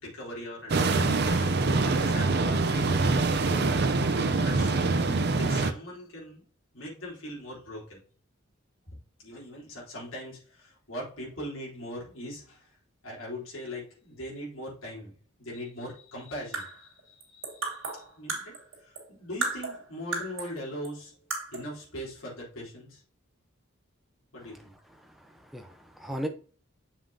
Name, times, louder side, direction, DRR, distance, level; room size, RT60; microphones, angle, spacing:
voice 1, 0.0-2.9 3.5-3.7 4.1-6.4 6.7-8.0 9.2-12.7 13.0-21.1 21.5-23.0 24.3-24.7, equal, 70° left, -4 dB, 3.6 m, -41 dB
sound 1, 0.7-5.7, right 3 dB, 50° right, 0.6 m, -25 dB
sound 2, 16.3-19.1 19.4-20.6 20.8-20.9 21.3-21.7, right 3 dB, 70° right, 2.9 m, -35 dB
voice 2, 25.2-26.3, equal, ahead, 5 dB, 0.7 m, -36 dB
7.3 x 5.7 x 2.8 m, 0.40 s
head